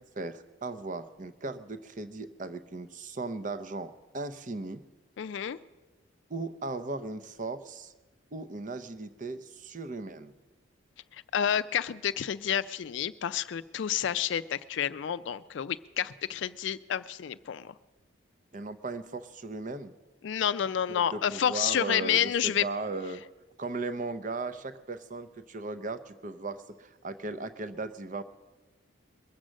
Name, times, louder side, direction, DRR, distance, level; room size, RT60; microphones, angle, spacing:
voice 1, 0.0-4.8 6.3-7.9 8.3-10.3 18.5-19.9 20.9-23.2 23.6-28.2, right 3 dB, 40° right, 12 dB, 0.6 m, -37 dB
voice 2, 5.2-5.6 11.1-17.7 20.2-22.6, left 9 dB, 60° left, 14 dB, 0.3 m, -29 dB
22.0 x 7.5 x 6.3 m, 1.2 s
head